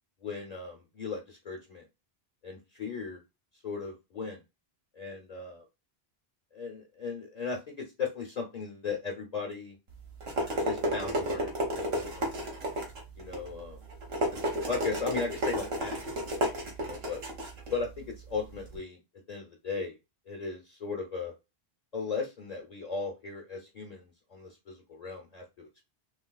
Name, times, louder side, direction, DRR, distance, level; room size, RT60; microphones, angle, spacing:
voice 1, 0.2-1.8 2.4-3.2 3.6-4.4 4.9-5.6 6.5-9.8 10.6-12.7 13.2-13.8 14.7-16.2 16.8-17.2 17.7-19.0 19.3-20.0 20.3-21.3 21.9-25.9, left 4 dB, 45° left, 1 dB, 0.8 m, -37 dB
sound 1, 9.9-18.8, right 1 dB, 70° right, 1.3 m, -33 dB
3.2 x 3.2 x 2.3 m, 0.25 s
omnidirectional pair, 1.1 m